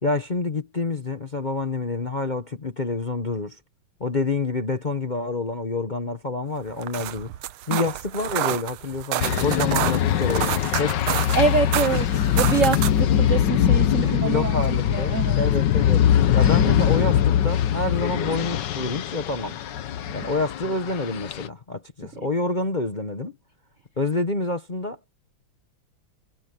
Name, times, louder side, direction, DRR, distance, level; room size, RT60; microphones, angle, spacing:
voice 1, 0.0-3.6 4.0-7.3 7.7-11.0 14.0-16.0 16.3-19.6 20.1-23.4 24.0-25.1, left 3 dB, 30° left, 0.8 m, -28 dB
sound 1, 6.7-13.1, right 13 dB, 90° right, 1.7 m, -29 dB
sound 2, 9.2-21.5, left 10 dB, 65° left, 1.4 m, -22 dB
voice 2, 11.3-15.4 20.2-20.3, right 5 dB, 60° right, 0.8 m, -25 dB
omnidirectional pair, 2.3 m